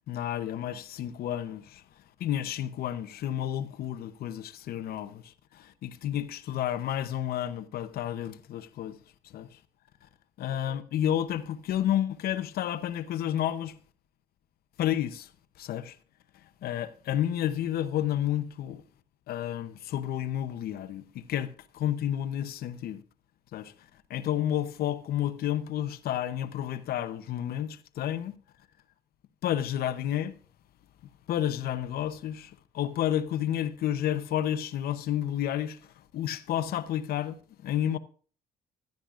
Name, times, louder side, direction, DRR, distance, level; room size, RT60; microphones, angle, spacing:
voice 1, 0.1-1.8 2.2-9.0 9.2-9.6 10.4-13.8 14.8-15.3 15.6-16.0 16.6-18.8 19.3-23.0 23.5-23.7 24.1-28.4 29.4-30.4 31.3-38.0, left 11 dB, 65° left, 0.8 m, -31 dB
16.0 x 12.0 x 2.5 m
cardioid pair, 110°, 17 cm